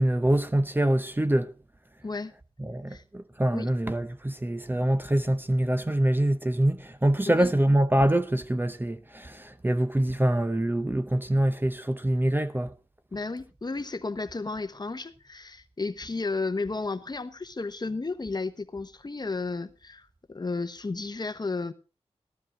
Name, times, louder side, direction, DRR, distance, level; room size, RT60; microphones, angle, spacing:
voice 1, 0.0-1.5 2.6-12.7, right 1 dB, 20° right, 0.6 m, -25 dB
voice 2, 13.1-21.7, left 3 dB, 35° left, 1.0 m, -33 dB
13.5 x 12.5 x 3.8 m
wide cardioid pair, 90°, 11 cm